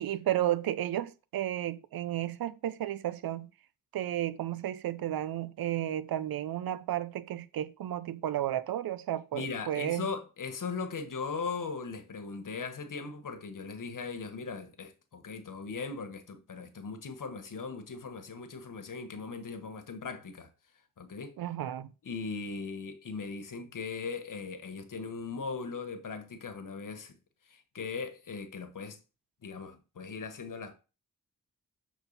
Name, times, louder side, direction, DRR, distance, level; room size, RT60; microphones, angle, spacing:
voice 1, 0.0-3.5 3.9-10.1 21.4-21.9, right 12 dB, 90° right, 0.5 m, -33 dB
voice 2, 9.3-20.5 21.0-21.4 22.0-27.2 27.4-29.0 29.4-30.7, left 4 dB, 65° left, 1.3 m, -39 dB
7.0 x 4.0 x 4.0 m
cardioid pair, 60°, 35 cm